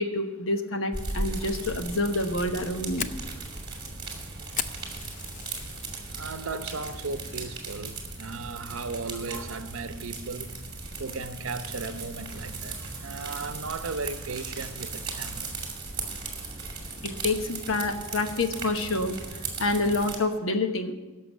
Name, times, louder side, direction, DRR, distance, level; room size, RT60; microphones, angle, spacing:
voice 1, 0.0-3.1 17.0-19.2 19.6-20.9, left 2 dB, 70° left, 1.1 m, -27 dB
sound 1, 0.9-20.2, right 3 dB, 25° right, 2.4 m, -37 dB
Fire, 2.4-6.0 6.4-6.7 7.1-7.3 7.8-8.1, left 9 dB, 40° left, 0.4 m, -37 dB
voice 2, 6.1-10.6 11.0-15.6, right 4 dB, 75° right, 0.8 m, -36 dB
11.5 x 6.9 x 8.1 m
head